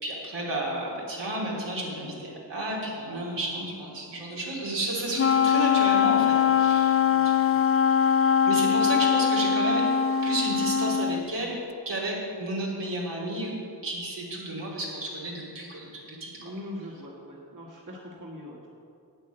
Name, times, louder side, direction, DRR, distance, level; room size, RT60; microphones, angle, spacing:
voice 1, 0.0-7.0 7.2-7.3 8.4-9.8 10.2-11.6 11.8-13.5 13.8-16.5, right 1 dB, 80° right, -5 dB, 3.3 m, -32 dB
Wind instrument woodwind instrument, 5.1-11.3, left 7 dB, 35° left, 0.4 m, -22 dB
voice 2, 7.0-7.6 16.4-18.7, left 1 dB, 45° right, -3 dB, 2.0 m, -42 dB
8.9 x 8.6 x 7.8 m, 2.6 s
cardioid pair, 50°, 42 cm